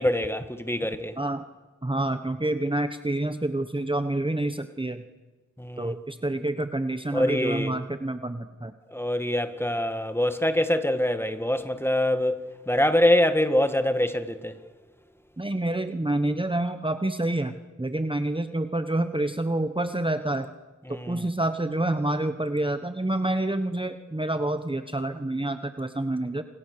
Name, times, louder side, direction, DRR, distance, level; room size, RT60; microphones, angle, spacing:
voice 1, 0.0-1.2 5.6-5.9 7.1-7.8 8.9-14.6 20.9-21.2, left 1 dB, 10° left, 1.9 m, -24 dB
voice 2, 1.8-5.0 5.8-8.7 15.4-20.5 20.9-26.4, right 1 dB, 15° right, 1.2 m, -28 dB
28.5 x 27.5 x 6.8 m
wide cardioid pair, 70°, 30 cm